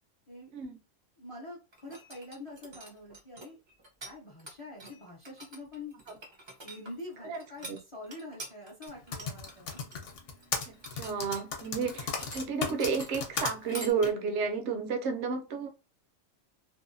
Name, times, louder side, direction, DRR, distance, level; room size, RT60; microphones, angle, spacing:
voice 1, 1.2-3.6 4.0-5.9 6.6-7.6 7.9-9.8, left 2 dB, 40° left, -3 dB, 0.4 m, -45 dB
sound 1, 1.7-4.1 4.4-13.9, right 1 dB, 35° right, 0.4 m, -46 dB
voice 2, 7.2-7.8 10.7-15.7, right 5 dB, 65° right, 5 dB, 0.9 m, -32 dB
Typing, 8.9-13.5 14.0-14.1, left 5 dB, 70° left, 1.0 m, -35 dB
2.7 x 2.2 x 2.5 m, 0.31 s
omnidirectional pair, 1.3 m